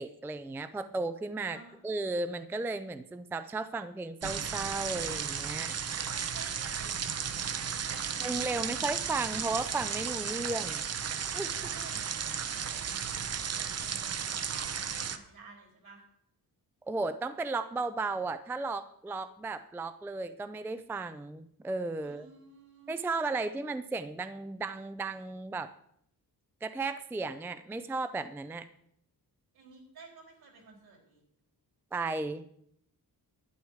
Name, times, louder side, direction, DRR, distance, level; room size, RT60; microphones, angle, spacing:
voice 1, 0.0-1.6 1.8-5.7 8.2-10.9 11.3-11.7 16.9-22.3 22.9-25.7 26.6-28.7 31.9-32.5, right 3 dB, 5° right, 12 dB, 0.4 m, -35 dB
voice 2, 1.5-1.9 6.1-7.6 11.7-16.0 22.0-23.4 29.5-31.2, right 4 dB, 70° right, 1 dB, 4.4 m, -53 dB
sound 1, 4.2-15.2, right 7 dB, 40° right, 0.7 m, -34 dB
11.5 x 11.0 x 4.8 m, 0.70 s
wide cardioid pair, 170°, 38 cm